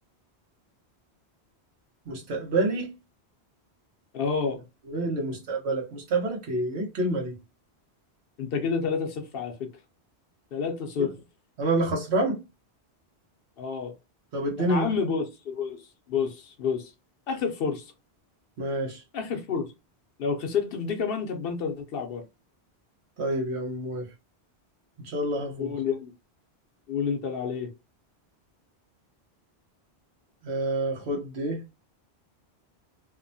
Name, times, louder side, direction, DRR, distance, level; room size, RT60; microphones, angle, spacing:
voice 1, 2.1-2.9 4.9-7.3 11.0-11.1 11.6-12.4 14.3-14.9 18.6-19.0 23.2-24.1 25.0-25.7 30.4-31.6, right 2 dB, 75° right, 1.2 m, -28 dB
voice 2, 4.1-4.6 8.4-9.7 10.5-11.1 13.6-13.9 14.6-15.8 16.1-16.9 17.3-17.9 19.1-19.7 20.2-22.2 25.6-26.1 26.9-27.7, left 5 dB, 65° left, 0.7 m, -29 dB
2.8 x 2.1 x 2.6 m
omnidirectional pair, 1.1 m